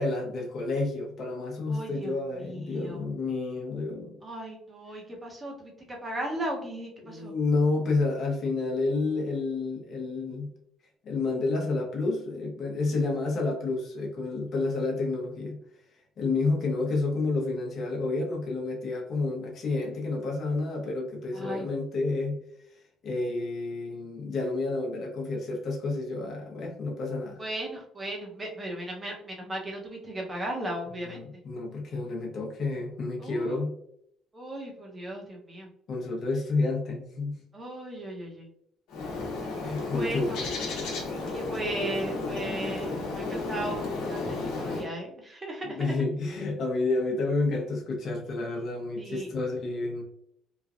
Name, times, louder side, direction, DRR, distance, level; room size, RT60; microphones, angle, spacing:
voice 1, 0.0-4.2 7.0-10.5 11.0-15.6 16.2-22.4 23.0-27.4 31.0-33.7 35.9-37.4 39.6-40.4 45.6-50.0, left 3 dB, 50° left, -1 dB, 0.8 m, -30 dB
voice 2, 1.7-2.1 2.4-3.0 4.2-7.3 21.3-21.6 27.4-31.2 33.2-33.6 34.3-35.7 37.5-38.5 39.9-40.4 41.2-43.8 44.1-46.0 49.0-49.3, right 1 dB, 20° right, 0 dB, 0.8 m, -36 dB
Bird, 38.9-44.9, left 3 dB, 80° left, 0.9 m, -33 dB
3.1 x 2.3 x 2.5 m, 0.70 s
cardioid pair, 110°, 0 cm